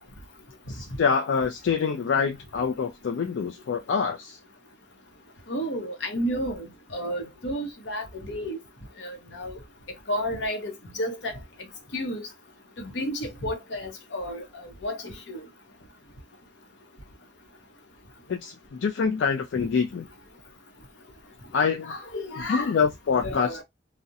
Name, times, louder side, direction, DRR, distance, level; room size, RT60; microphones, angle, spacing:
voice 1, 0.7-4.4 18.3-20.0 21.5-21.9 22.5-23.6, left 6 dB, 90° left, 0.4 m, -26 dB
voice 2, 5.5-8.6 9.0-9.6 10.1-11.3 11.9-12.2 12.8-15.4 21.8-22.7 23.2-23.6, equal, 70° left, 0.8 m, -32 dB
2.4 x 2.1 x 2.6 m
head